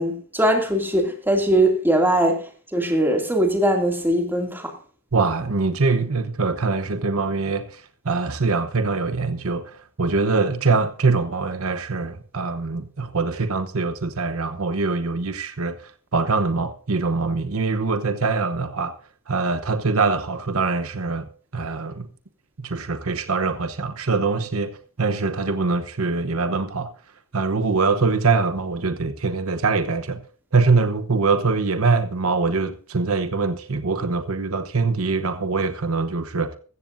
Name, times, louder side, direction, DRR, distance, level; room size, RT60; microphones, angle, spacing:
voice 1, 0.0-2.4 2.7-4.7, right 1 dB, 10° right, 2.4 m, -20 dB
voice 2, 5.1-18.9 19.3-22.1 22.6-26.9 27.3-30.2 30.5-36.6, right 4 dB, 75° right, 0.9 m, -23 dB
15.0 x 14.5 x 2.6 m
head